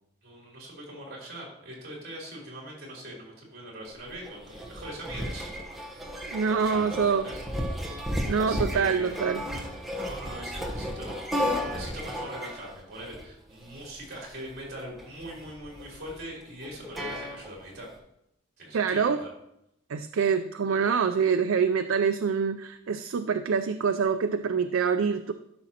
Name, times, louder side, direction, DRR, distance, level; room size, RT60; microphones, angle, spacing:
voice 1, 0.2-5.5 6.5-7.4 8.4-9.2 9.9-17.9 18.6-19.3, right 1 dB, 50° right, -3 dB, 3.5 m, -42 dB
sound 1, 3.9-17.8, equal, ahead, 1.0 m, -34 dB
voice 2, 6.3-7.2 8.2-9.4 18.7-19.2 19.9-25.3, right 6 dB, 85° right, 8 dB, 0.4 m, -25 dB
13.0 x 6.1 x 2.9 m, 0.79 s
head